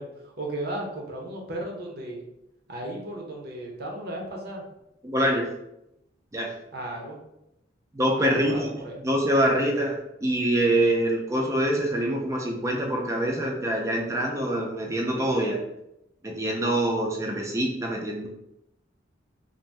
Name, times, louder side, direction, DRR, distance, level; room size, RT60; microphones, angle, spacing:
voice 1, 0.0-2.2 2.7-4.6 6.7-7.2 8.2-9.0, right 1 dB, 55° right, -1 dB, 0.6 m, -35 dB
voice 2, 5.0-5.5 6.3-6.5 7.9-8.7 9.0-15.6 16.2-18.3, right 1 dB, 15° right, 0 dB, 0.4 m, -25 dB
2.5 x 2.1 x 3.2 m, 0.85 s
head